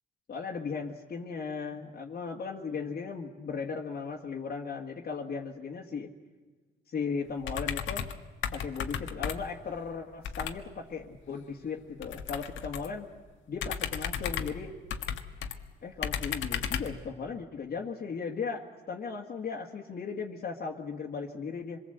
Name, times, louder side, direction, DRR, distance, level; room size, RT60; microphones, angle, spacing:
voice 1, 0.3-6.1 6.9-8.1 8.5-13.1 13.5-14.7 15.8-21.8, left 5 dB, 50° left, -2 dB, 1.9 m, -37 dB
sound 1, 7.4-8.2 8.4-9.6 10.2-10.6 12.0-13.0 13.6-15.6 16.0-17.0, left 8 dB, 75° left, 1.5 m, -34 dB
26.0 x 22.0 x 8.0 m, 1.4 s
cardioid pair, 90°, 20 cm